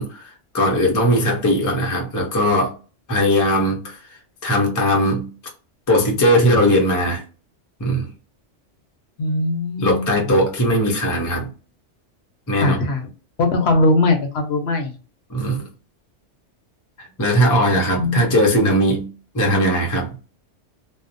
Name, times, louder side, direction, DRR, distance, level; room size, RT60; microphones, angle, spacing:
voice 1, 0.0-2.7 3.1-4.0 4.4-5.3 5.9-7.2 7.8-8.1 9.8-11.5 12.5-12.8 15.3-15.6 17.0-19.1 19.3-20.1, equal, 25° left, 0.4 m, -19 dB
voice 2, 9.2-10.1 12.6-13.1 13.4-14.9 18.0-18.2, left 2 dB, 65° left, 0.8 m, -20 dB
2.7 x 2.0 x 2.5 m
omnidirectional pair, 1.3 m